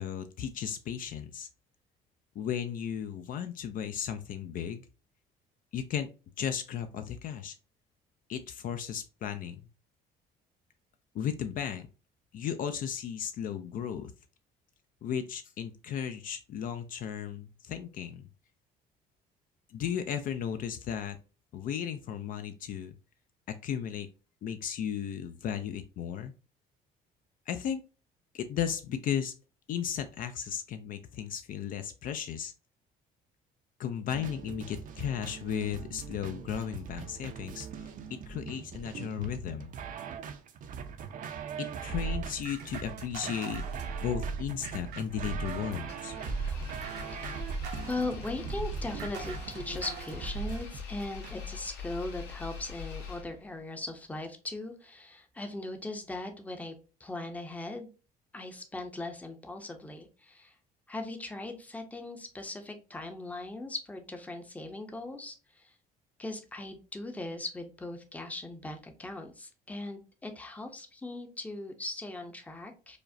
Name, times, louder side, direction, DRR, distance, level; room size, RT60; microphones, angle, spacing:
voice 1, 0.0-1.5 2.4-4.8 5.7-6.1 6.4-7.6 8.3-9.6 11.1-11.9 12.3-14.1 15.0-18.3 19.7-21.2 21.5-22.9 23.5-24.1 24.4-26.3 27.5-27.8 28.3-29.3 29.7-32.5 33.8-37.9 38.3-39.7 41.6-43.6 44.0-46.1, left 8 dB, 55° left, 8 dB, 0.4 m, -35 dB
sound 1, 34.1-51.3, right 7 dB, 50° right, 0.5 m, -42 dB
sound 2, 41.9-45.8 46.3-50.6, right 4 dB, 80° right, 0.8 m, -38 dB
voice 2, 45.7-46.7 47.0-47.3 47.9-56.7 57.0-57.9 58.3-60.5 60.9-65.7 66.2-73.0, left 2 dB, 10° left, 5 dB, 0.6 m, -39 dB
Engine, 45.9-53.6, left 7 dB, 75° left, 1.3 m, -43 dB
4.8 x 2.0 x 2.6 m, 0.35 s
cardioid pair, 110°, 17 cm